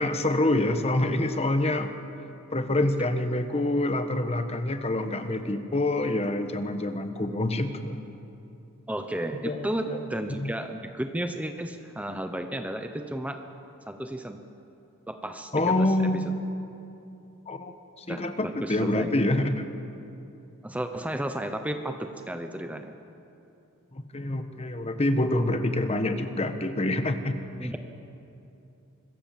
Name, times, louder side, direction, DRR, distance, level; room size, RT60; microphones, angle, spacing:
voice 1, 0.0-1.9 2.5-8.0 9.4-10.0 10.4-10.5 15.5-16.3 17.5-19.7 23.9-27.3 27.6-27.8, left 1 dB, 30° left, 8 dB, 1.2 m, -26 dB
voice 2, 8.9-13.4 13.9-14.4 15.1-15.9 18.1-19.1 20.6-23.0 27.6-27.8, right 1 dB, 5° right, 6 dB, 0.9 m, -33 dB
25.5 x 21.5 x 7.5 m, 2.8 s
head